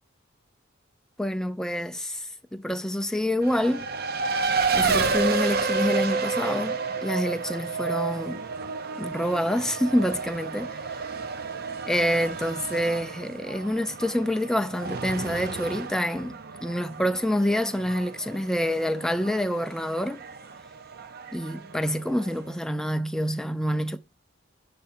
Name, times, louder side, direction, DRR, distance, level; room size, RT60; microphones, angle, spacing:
voice 1, 1.2-3.9 4.7-8.4 9.0-11.0 11.9-20.2 21.3-24.0, equal, 5° left, 0.3 m, -27 dB
Race car auto racing, 3.4-22.5, right 4 dB, 50° right, 0.6 m, -31 dB
6.5 x 3.4 x 4.2 m
head